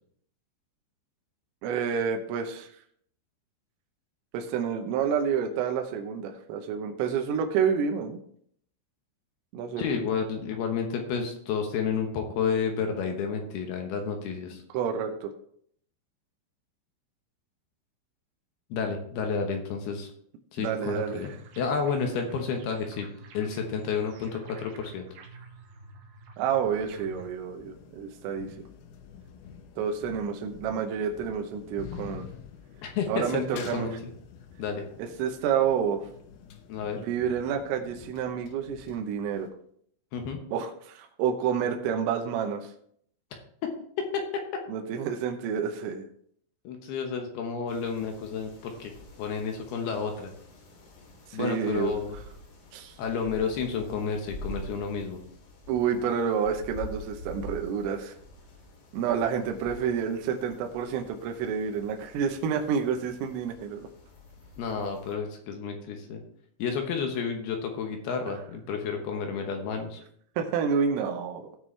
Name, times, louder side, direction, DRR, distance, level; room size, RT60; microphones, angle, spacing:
voice 1, 1.6-2.7 4.3-8.2 9.5-10.0 14.7-15.3 20.6-21.3 26.4-28.5 29.8-32.3 33.1-33.9 35.0-36.1 37.0-39.5 40.5-42.7 44.7-46.1 51.3-52.0 52.7-53.0 55.7-58.2 58.9-63.8 70.4-71.5, right 7 dB, 85° right, 4 dB, 3.5 m, -29 dB
voice 2, 9.8-14.6 18.7-20.1 20.5-21.3 21.6-23.1 23.3-25.0 32.8-33.9 34.6-34.9 36.7-37.0 40.1-40.4 43.6-43.7 44.1-44.2 46.6-48.9 49.2-50.3 51.3-52.2 53.0-55.2 64.6-66.2 66.6-70.0, left 6 dB, 70° left, 3 dB, 2.6 m, -31 dB
sound 1, 20.9-27.3, right 3 dB, 70° right, 2.2 m, -49 dB
sound 2, 26.6-39.5, left 7 dB, 85° left, 2.2 m, -48 dB
sound 3, 47.7-65.2, left 1 dB, 55° left, 4.2 m, -47 dB
17.0 x 6.2 x 3.3 m, 0.65 s
omnidirectional pair, 5.7 m